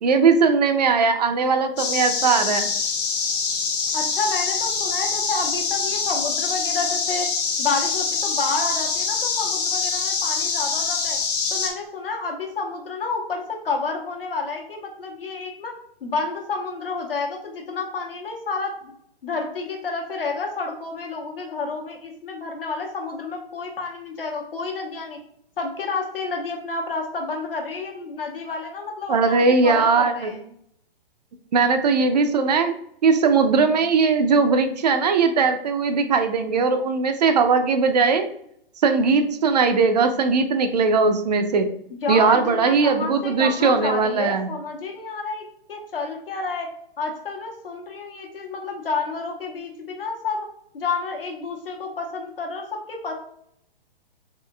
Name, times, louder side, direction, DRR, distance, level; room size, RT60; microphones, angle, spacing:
voice 1, 0.0-2.7 29.1-30.3 31.5-32.8 33.0-38.3 38.8-41.7 42.1-44.5, right 4 dB, 45° right, 7 dB, 0.4 m, -19 dB
sound 1, 1.8-11.7, left 5 dB, 40° left, 0.9 m, -25 dB
voice 2, 3.9-7.3 7.6-11.2 11.5-15.7 16.0-18.7 19.2-25.2 25.6-30.4 42.0-46.7 47.0-50.5 50.7-53.1, left 4 dB, 65° left, 1 dB, 1.0 m, -30 dB
3.6 x 3.6 x 2.3 m, 0.70 s
figure-of-eight pair, 130°, 30 cm